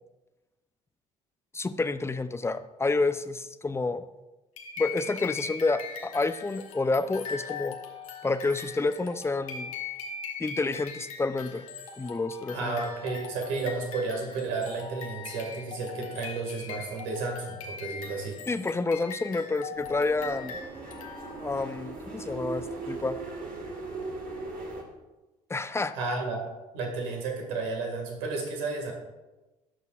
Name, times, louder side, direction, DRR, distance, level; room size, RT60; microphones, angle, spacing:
voice 1, 1.5-4.0 4.8-7.8 8.2-9.7 10.4-11.7 12.0-12.7 18.5-20.6 21.4-23.2 25.5-26.0, left 3 dB, 15° left, 11 dB, 0.6 m, -29 dB
sound 1, 4.6-21.6, left 6 dB, 85° left, 1.0 m, -41 dB
voice 2, 12.5-18.4 25.9-26.5 26.7-28.9, right 3 dB, 75° right, 1 dB, 2.1 m, -32 dB
sound 2, 19.7-24.8, right 3 dB, 55° right, 1.9 m, -38 dB
17.0 x 6.6 x 2.5 m, 1.1 s
hypercardioid pair, 55°, 17 cm